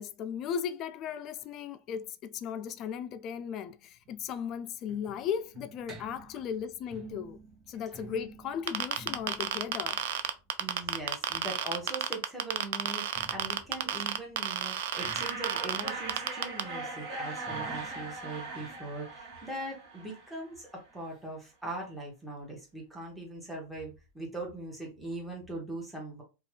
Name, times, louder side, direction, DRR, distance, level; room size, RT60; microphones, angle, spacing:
voice 1, 0.0-7.4 7.7-10.0, left 8 dB, 40° left, 0.3 m, -36 dB
sound 1, 4.0-11.7 12.9-20.3 20.5-20.6 20.9-21.0 21.6-21.7, right 3 dB, 30° right, 0.7 m, -52 dB
sound 2, 8.7-16.6, right 11 dB, 70° right, 0.3 m, -31 dB
voice 2, 10.6-26.2, right 2 dB, 5° right, 1.1 m, -41 dB
sound 3, 15.0-20.5, right 3 dB, 50° right, 1.1 m, -39 dB
2.6 x 2.3 x 3.2 m
hypercardioid pair, 115°, 0 cm